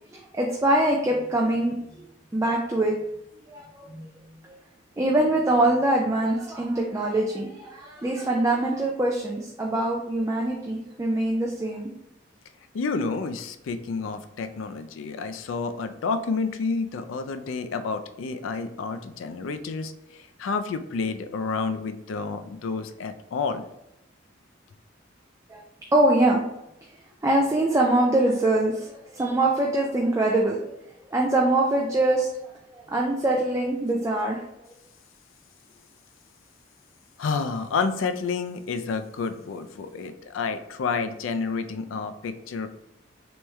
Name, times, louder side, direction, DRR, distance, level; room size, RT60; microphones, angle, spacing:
voice 1, 0.3-1.7 2.3-2.9 3.5-4.1 4.5-4.6 5.0-11.9 25.5-25.6 25.9-26.4 27.2-30.7 31.1-34.4, right 1 dB, 15° right, -1 dB, 0.3 m, -23 dB
voice 2, 12.7-23.7 37.2-42.7, left 4 dB, 80° left, 9 dB, 0.4 m, -30 dB
3.4 x 3.0 x 3.1 m, 0.85 s
head